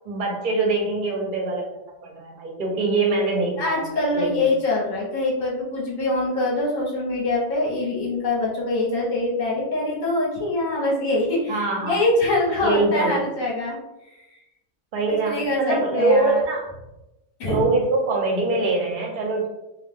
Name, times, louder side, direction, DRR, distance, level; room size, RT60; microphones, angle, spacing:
voice 1, 0.0-1.7 2.0-3.8 4.1-4.5 11.5-12.0 12.6-13.2 14.9-16.7 17.4-19.5, right 3 dB, 50° right, 0 dB, 0.6 m, -23 dB
voice 2, 3.6-13.8 14.1-14.2 15.2-16.4 17.4-17.6, left 2 dB, 40° left, -4 dB, 0.9 m, -24 dB
2.4 x 2.3 x 3.4 m, 0.95 s
omnidirectional pair, 1.5 m